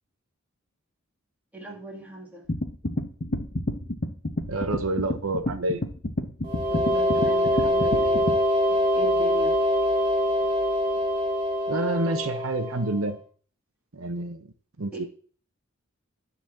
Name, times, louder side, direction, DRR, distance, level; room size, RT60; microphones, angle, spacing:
voice 1, 1.5-2.4 6.7-8.3 8.9-9.6 14.9-15.0, right 1 dB, 5° right, -1 dB, 2.3 m, -38 dB
sound 1, 2.5-8.4, left 1 dB, 40° left, 0.9 m, -29 dB
voice 2, 4.5-5.8 11.7-13.2 13.9-14.5 14.8-15.1, right 2 dB, 75° right, 8 dB, 0.9 m, -28 dB
sound 2, 6.4-13.1, equal, 25° right, 2.2 m, -24 dB
10.0 x 4.2 x 7.4 m, 0.43 s
head